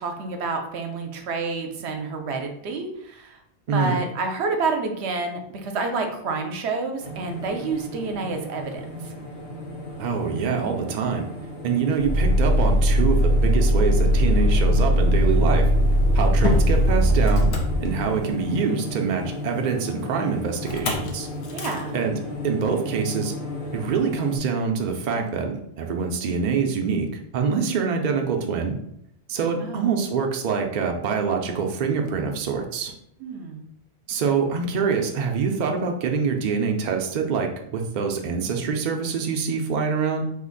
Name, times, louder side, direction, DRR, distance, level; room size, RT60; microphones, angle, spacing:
voice 1, 0.0-3.4 3.7-9.1 21.5-22.0 29.6-30.0 33.2-33.6, right 4 dB, 75° right, 5 dB, 0.9 m, -29 dB
voice 2, 3.7-4.0 10.0-11.3 11.6-15.6 16.1-17.5 17.8-21.3 21.9-22.2 22.4-23.3 23.7-28.7 29.3-32.9 34.1-40.2, right 5 dB, 55° right, 3 dB, 0.5 m, -25 dB
sound 1, 7.0-24.4, left 2 dB, 55° left, 0.8 m, -35 dB
Motor vehicle (road), 12.0-18.4 20.7-21.1 21.4-21.8, equal, 75° left, 0.9 m, -19 dB
2.8 x 2.4 x 3.8 m, 0.73 s
omnidirectional pair, 1.1 m